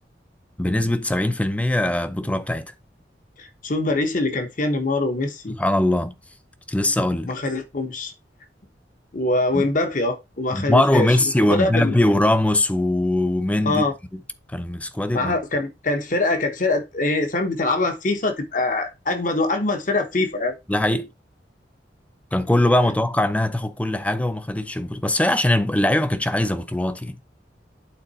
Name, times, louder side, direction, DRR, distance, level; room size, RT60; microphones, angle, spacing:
voice 1, 0.6-2.7 5.5-6.1 6.7-7.3 9.5-9.7 10.5-13.8 14.1-14.2 14.5-15.4 20.7-21.1 22.3-27.2, left 1 dB, 10° left, 0.6 m, -21 dB
voice 2, 3.4-5.5 7.3-8.1 9.1-12.0 13.6-13.9 15.1-20.6, left 2 dB, 50° left, 1.2 m, -23 dB
8.7 x 3.9 x 4.2 m
head